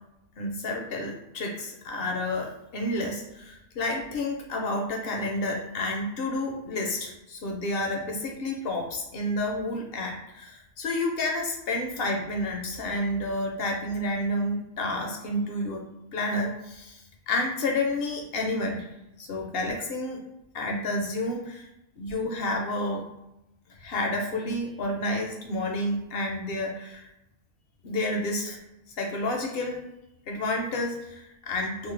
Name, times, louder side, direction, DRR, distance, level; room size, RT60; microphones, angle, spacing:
voice 1, 0.4-15.8 16.1-18.9 19.2-20.2 20.5-21.7 22.0-23.1 23.8-27.1 27.8-28.6 29.0-29.8 30.3-31.9, left 1 dB, 65° left, 1 dB, 0.6 m, -30 dB
3.1 x 2.1 x 3.1 m, 0.90 s
omnidirectional pair, 1.4 m